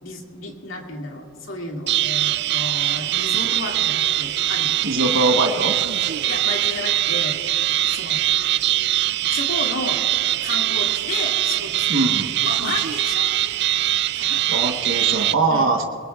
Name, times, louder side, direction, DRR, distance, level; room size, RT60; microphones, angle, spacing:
voice 1, 0.0-5.1 6.3-7.4 7.8-8.2 9.3-10.0 10.4-13.3 14.2-14.4 15.5-15.7, left 2 dB, 75° left, 1 dB, 2.1 m, -32 dB
sound 1, 1.9-15.3, right 13 dB, 55° right, 0.3 m, -22 dB
voice 2, 4.8-5.8 11.9-12.3 14.5-15.9, right 2 dB, 70° right, 3 dB, 1.1 m, -21 dB
22.0 x 20.5 x 2.3 m, 2.9 s
head